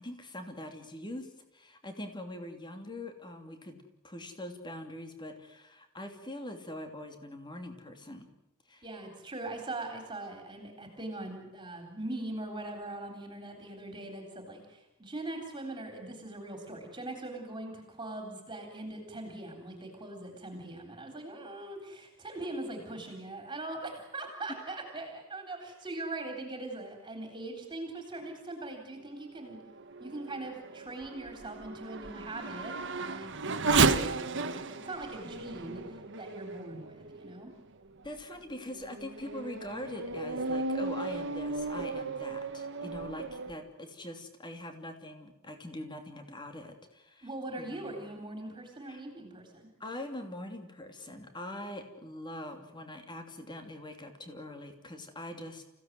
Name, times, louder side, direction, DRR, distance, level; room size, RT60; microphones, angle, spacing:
voice 1, 0.0-3.8 4.0-8.3 8.7-8.8 38.0-47.3 47.6-48.0 48.9-49.0 49.8-55.6, left 1 dB, 20° left, 6 dB, 2.9 m, -43 dB
voice 2, 8.8-29.6 30.0-37.5 47.2-49.7, right 2 dB, 20° right, 4 dB, 3.8 m, -41 dB
Race car auto racing / Accelerating revving vroom, 29.5-37.4 38.0-38.1 38.7-43.5, right 4 dB, 60° right, 1.5 m, -33 dB
28.5 x 16.5 x 9.4 m, 0.95 s
head